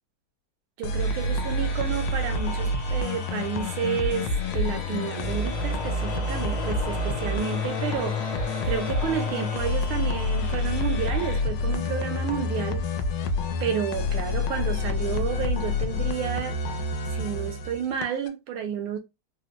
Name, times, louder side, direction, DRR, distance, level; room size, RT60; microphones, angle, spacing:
sound 1, 0.8-18.3, left 2 dB, 80° left, 1.4 m, -28 dB
voice 1, 0.8-8.4 8.6-12.8 13.6-16.6 17.1-19.0, right 8 dB, 80° right, 1.5 m, -31 dB
sound 2, 1.0-11.4, left 3 dB, 60° left, 1.2 m, -42 dB
sound 3, 3.7-10.6, equal, 40° left, 0.6 m, -39 dB
3.9 x 2.0 x 2.9 m
omnidirectional pair, 2.3 m